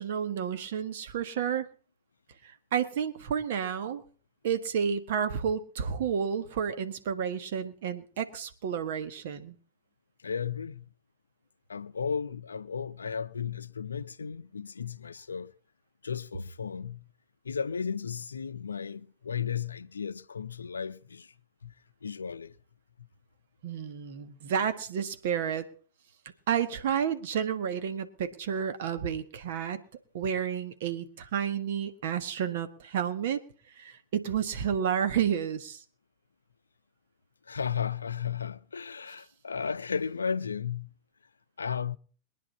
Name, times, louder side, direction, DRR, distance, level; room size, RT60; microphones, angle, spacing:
voice 1, 0.0-1.7 2.4-4.0 4.4-9.5 23.6-25.7 26.5-29.8 30.1-33.4 33.8-35.8, right 8 dB, 55° right, 1.6 m, -31 dB
voice 2, 10.2-10.9 11.7-15.5 16.0-17.0 17.4-21.3 21.6-21.7 22.0-22.5 37.5-40.9 41.6-42.0, left 6 dB, 75° left, 0.6 m, -34 dB
22.5 x 10.0 x 4.2 m
figure-of-eight pair, 90°, 0 cm